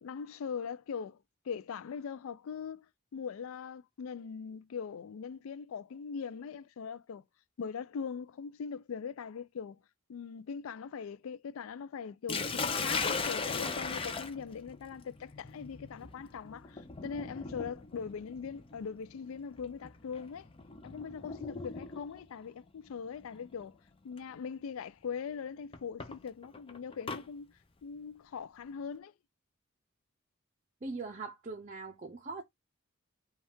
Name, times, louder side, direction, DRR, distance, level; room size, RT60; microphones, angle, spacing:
voice 1, 0.0-1.2 1.4-2.9 3.1-7.2 7.6-9.8 10.1-20.5 20.8-23.8 24.0-27.5 27.8-29.1, left 6 dB, 85° left, 0.4 m, -41 dB
Sink (filling or washing), 12.3-22.2 23.3-23.7 24.2-24.3 25.7-27.2, left 4 dB, 25° left, 0.5 m, -38 dB
voice 2, 30.8-32.4, right 3 dB, 35° right, 0.6 m, -41 dB
5.2 x 2.4 x 3.5 m
head